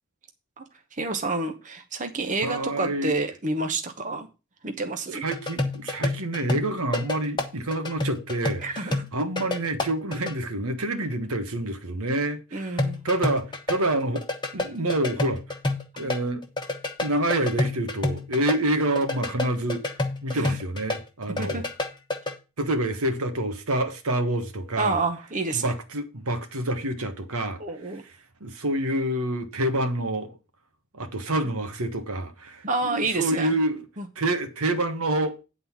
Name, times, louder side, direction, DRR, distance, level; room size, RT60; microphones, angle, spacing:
voice 1, 0.9-4.3 4.6-5.2 8.6-9.1 12.5-13.0 20.3-20.6 21.4-21.6 24.8-25.7 27.6-28.0 32.6-33.5 34.0-34.1, right 3 dB, 35° right, 0.9 m, -29 dB
voice 2, 2.4-3.1 5.1-14.2 14.5-15.4 16.0-16.4 17.0-19.8 20.2-21.6 22.6-25.0 25.5-28.1 28.4-30.4 30.9-33.9 34.1-35.4, right 1 dB, 75° right, 1.4 m, -27 dB
sound 1, 5.3-10.3 12.8-16.2 16.4-21.0 21.2-22.3, left 2 dB, 20° left, 1.2 m, -28 dB
9.8 x 4.0 x 7.2 m
head